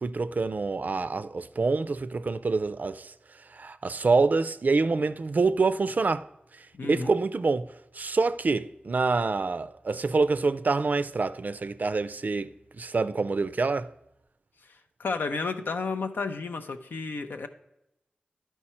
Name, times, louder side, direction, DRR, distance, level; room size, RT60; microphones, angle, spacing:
voice 1, 0.0-3.1 3.5-6.3 6.8-7.7 7.9-13.9, right 4 dB, 55° right, 0.4 m, -26 dB
voice 2, 6.7-7.1 14.6-17.5, left 4 dB, 85° left, 0.5 m, -32 dB
11.0 x 4.6 x 4.3 m
cardioid pair, 45°, 3 cm